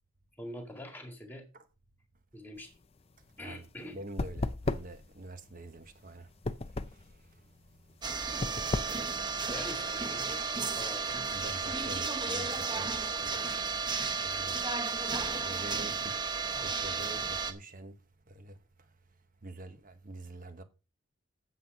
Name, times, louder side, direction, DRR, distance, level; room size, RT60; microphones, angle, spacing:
voice 1, 0.4-1.5 2.3-2.7 3.4-4.0 9.5-10.4 10.8-11.3, left 1 dB, 10° left, 2.0 m, -44 dB
sound 1, 2.6-10.1, left 2 dB, 25° left, 0.5 m, -37 dB
voice 2, 3.9-6.3 11.3-14.6 15.4-17.9 18.3-18.6 19.4-20.6, right 2 dB, 35° right, 1.2 m, -46 dB
sound 2, 8.0-17.5, right 4 dB, 20° right, 0.8 m, -33 dB
8.5 x 7.8 x 5.3 m
head